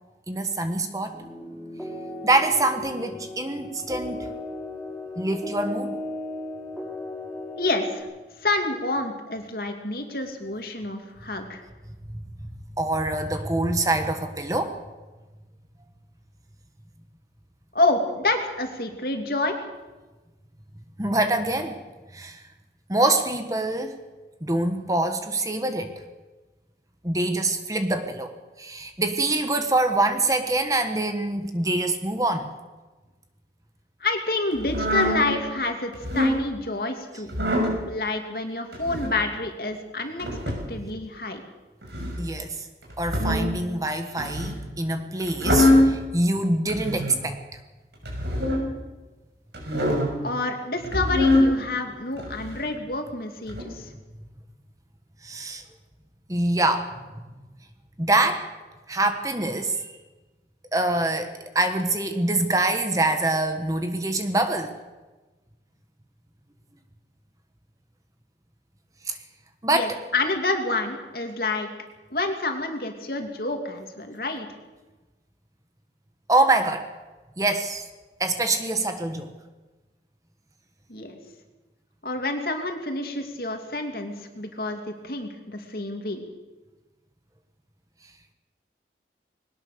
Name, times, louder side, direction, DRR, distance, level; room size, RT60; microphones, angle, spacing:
voice 1, 0.3-1.2 2.2-4.3 5.2-6.0 12.1-12.2 12.8-14.8 21.0-21.8 22.1-22.4 22.9-24.0 24.4-25.9 27.0-28.3 28.6-32.5 42.2-42.7 43.0-47.4 55.2-55.6 56.3-56.9 58.0-58.5 58.9-59.9 60.7-64.8 69.1-69.2 69.6-69.9 76.3-76.9 77.4-77.8 78.2-79.3, right 2 dB, 20° right, 7 dB, 1.4 m, -25 dB
sound 1, 1.1-8.0, left 1 dB, 5° right, 5.7 m, -36 dB
voice 2, 7.6-8.1 8.4-11.6 17.7-19.6 34.0-37.3 37.9-40.4 40.7-41.4 50.2-53.9 69.7-71.7 72.1-74.5 80.9-81.2 82.0-86.3, left 2 dB, 55° left, 4 dB, 2.7 m, -28 dB
sound 2, 34.6-35.2 35.9-36.4 37.3-37.7 38.7-39.1 40.2-40.7 41.8-42.2 42.9-43.5 44.2-44.6 45.2-45.9 46.7-47.2 48.0-48.6 49.5-50.1 50.8-51.5 52.2-52.7 53.5-53.6, left 1 dB, 85° right, 6.3 m, -23 dB
21.0 x 18.5 x 6.8 m, 1.2 s
head